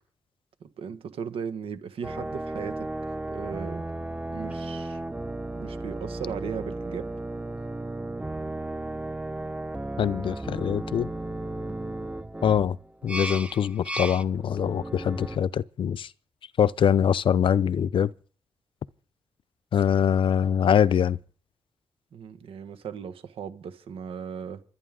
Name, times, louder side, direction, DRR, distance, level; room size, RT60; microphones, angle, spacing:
voice 1, 0.6-2.9 3.3-3.8 4.3-5.0 5.5-7.1 22.1-24.6, right 7 dB, 80° right, 1.6 m, -37 dB
sound 1, 2.0-15.4, right 2 dB, 15° right, 1.0 m, -34 dB
voice 2, 10.0-11.1 12.4-12.8 13.0-16.1 16.6-18.1 19.7-21.2, left 8 dB, 65° left, 0.6 m, -23 dB
27.0 x 9.5 x 3.8 m
cardioid pair, 65°, 9 cm